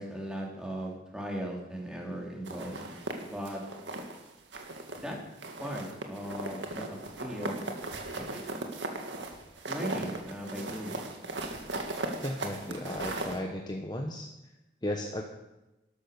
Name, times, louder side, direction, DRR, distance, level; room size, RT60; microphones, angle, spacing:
voice 1, 0.0-2.8 3.2-3.6 5.0-5.2 5.6-7.7 8.2-8.5 9.7-11.1, equal, 5° right, -1 dB, 3.1 m, -38 dB
sound 1, 2.5-4.2 4.5-5.1 5.4-13.4, right 2 dB, 70° right, 2.1 m, -37 dB
voice 2, 12.2-14.3 14.8-15.2, left 1 dB, 20° left, 2 dB, 1.0 m, -35 dB
12.5 x 12.5 x 6.7 m, 1.0 s
head